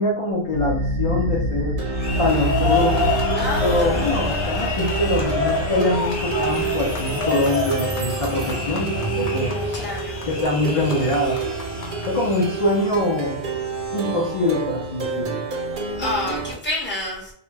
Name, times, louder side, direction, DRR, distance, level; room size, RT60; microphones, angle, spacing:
voice 1, 0.0-1.7 2.2-3.1 3.6-9.5 10.3-11.4 12.1-13.4 13.9-15.4, left 1 dB, 45° left, -3 dB, 0.5 m, -23 dB
Plucked string instrument, 0.5-16.6, right 2 dB, 60° right, 0.7 m, -27 dB
sound 1, 1.8-12.9, left 3 dB, 80° left, 0.9 m, -28 dB
voice 2, 3.4-4.2 9.7-10.2 15.9-17.3, left 2 dB, 10° left, -4 dB, 0.7 m, -28 dB
sound 2, 3.8-14.5, equal, 15° right, 0.8 m, -39 dB
2.3 x 2.0 x 3.1 m, 0.70 s
omnidirectional pair, 1.1 m